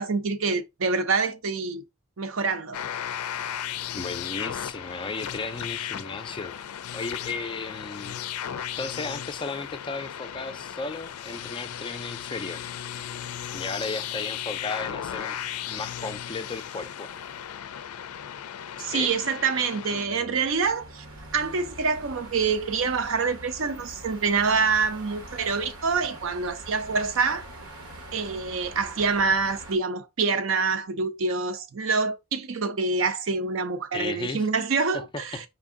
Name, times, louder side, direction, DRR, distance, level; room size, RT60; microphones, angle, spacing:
voice 1, 0.0-1.8 2.2-2.8 18.8-21.0 21.3-27.4 28.1-35.4, right 4 dB, 60° right, 0.5 m, -26 dB
sound 1, 2.7-20.1, left 10 dB, 85° left, 0.4 m, -36 dB
voice 2, 3.9-6.6 6.9-12.7 13.5-15.4 15.7-17.2 18.9-19.1 19.9-20.5 33.9-34.5 34.9-35.1 35.3-35.4, left 3 dB, 20° left, 0.4 m, -35 dB
sound 2, 20.4-29.8, right 1 dB, 75° right, 1.2 m, -43 dB
4.5 x 2.6 x 3.6 m
head